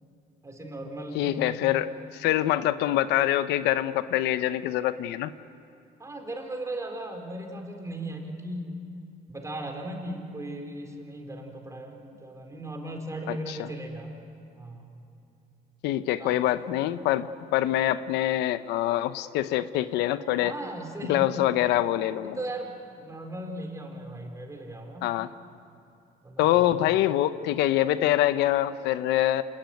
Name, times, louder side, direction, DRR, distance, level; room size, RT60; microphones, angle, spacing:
voice 1, 0.4-1.5 1.9-2.0 2.3-2.7 6.0-8.7 9.3-14.1 14.6-14.9 16.2-16.9 20.4-21.3 22.2-25.1 26.2-26.4, right 1 dB, 20° right, 3 dB, 4.4 m, -37 dB
voice 2, 1.1-5.3 13.3-13.7 15.8-20.5 21.1-22.4 25.0-25.3 26.4-29.4, left 13 dB, 90° left, 13 dB, 0.8 m, -25 dB
27.0 x 20.0 x 9.2 m, 2.7 s
cardioid pair, 110°, 17 cm